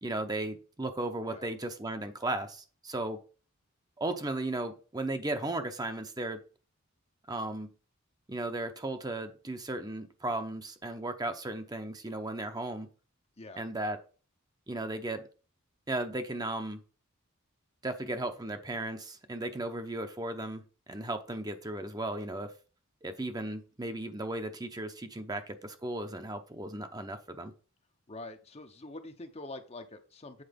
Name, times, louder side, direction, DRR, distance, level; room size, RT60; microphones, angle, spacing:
voice 1, 0.0-3.2 4.0-6.4 7.3-7.7 8.3-12.9 13.6-14.0 14.7-15.2 15.9-16.8 17.8-22.5 23.0-27.5, right 2 dB, 20° right, 7 dB, 0.8 m, -35 dB
voice 2, 13.4-13.7 28.1-30.4, left 2 dB, 30° left, 7 dB, 0.8 m, -45 dB
8.0 x 4.6 x 5.2 m, 0.36 s
head